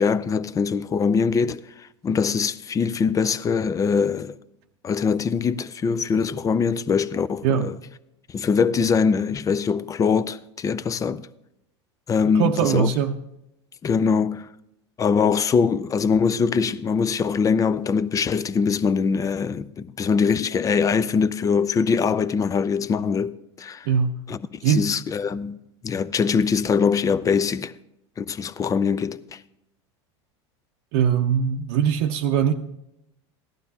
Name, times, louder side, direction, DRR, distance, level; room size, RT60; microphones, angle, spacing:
voice 1, 0.0-4.4 4.8-7.7 8.3-11.3 12.1-12.9 13.8-14.5 15.0-23.9 24.3-25.6 25.8-27.7 28.2-29.4, left 5 dB, 20° left, 0.5 m, -23 dB
voice 2, 12.3-13.1 23.9-24.2 24.6-24.9 30.9-32.5, right 8 dB, 65° right, 0.6 m, -21 dB
16.0 x 11.5 x 2.8 m
hypercardioid pair, 100°, 15 cm